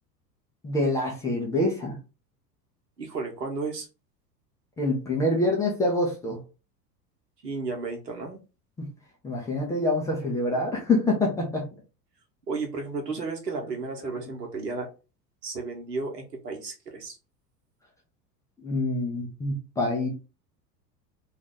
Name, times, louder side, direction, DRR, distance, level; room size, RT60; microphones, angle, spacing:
voice 1, 0.6-2.0 4.8-6.4 8.8-8.9 9.2-11.7 13.6-13.7 14.0-14.1 18.6-20.1, left 2 dB, 5° left, -2 dB, 0.4 m, -26 dB
voice 2, 3.0-3.9 7.4-8.4 12.5-14.9 15.4-17.2, right 4 dB, 75° right, 2 dB, 1.1 m, -33 dB
2.7 x 2.3 x 3.7 m, 0.31 s
figure-of-eight pair, 80°, 49 cm